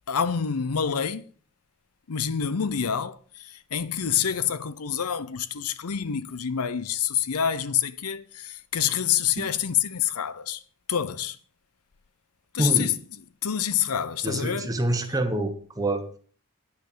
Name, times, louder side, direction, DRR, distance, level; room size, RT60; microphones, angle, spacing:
voice 1, 0.1-1.3 2.1-10.6 10.9-11.4 12.5-12.9 13.4-14.7, left 8 dB, 85° left, 0.7 m, -27 dB
voice 2, 12.6-12.9 14.2-16.1, right 1 dB, 15° right, 1.2 m, -26 dB
9.9 x 6.4 x 6.8 m
head